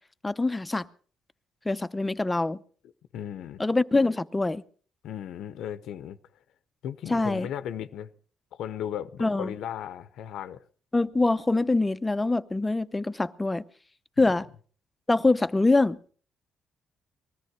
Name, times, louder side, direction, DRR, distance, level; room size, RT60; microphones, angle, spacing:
voice 1, 0.2-0.9 1.6-2.6 3.6-4.6 7.1-7.5 9.2-9.5 10.9-13.6 14.2-14.5 15.1-16.0, left 2 dB, 15° left, 0.8 m, -24 dB
voice 2, 3.1-3.6 5.0-6.2 6.8-8.1 8.6-10.6 14.2-14.4, left 10 dB, 80° left, 0.8 m, -36 dB
20.0 x 14.0 x 4.7 m
cardioid pair, 90°, 0 cm